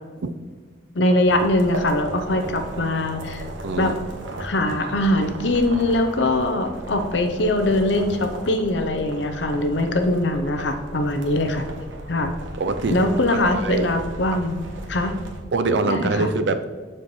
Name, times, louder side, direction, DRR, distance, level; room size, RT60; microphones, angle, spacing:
voice 1, 0.9-3.4 3.8-4.0 4.4-11.7 12.1-12.3 12.9-15.1 15.9-16.3, left 1 dB, 70° left, 6 dB, 0.7 m, -22 dB
sound 1, 1.2-15.4, right 1 dB, 90° right, 1.1 m, -36 dB
voice 2, 3.6-3.9 12.6-13.0 13.3-13.9 14.3-14.4 15.5-16.7, right 3 dB, 65° right, 10 dB, 0.5 m, -24 dB
12.5 x 4.4 x 3.2 m, 1.5 s
head